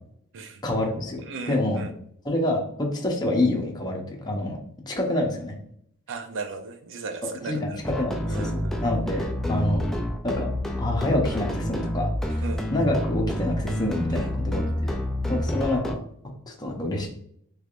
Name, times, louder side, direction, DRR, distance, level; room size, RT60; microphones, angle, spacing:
voice 1, 0.6-1.2 1.5-1.9 2.2-4.6 4.9-5.5 7.5-9.8 10.2-10.5 10.8-12.4 12.7-15.0 15.3-17.1, left 1 dB, 20° left, 0 dB, 0.7 m, -27 dB
voice 2, 1.2-1.9 6.1-7.8 8.3-8.9 12.4-12.6 14.1-14.4, right 4 dB, 60° right, 6 dB, 0.5 m, -36 dB
sound 1, 7.8-16.0, left 1 dB, ahead, 0.3 m, -28 dB
3.3 x 3.1 x 2.4 m, 0.67 s
head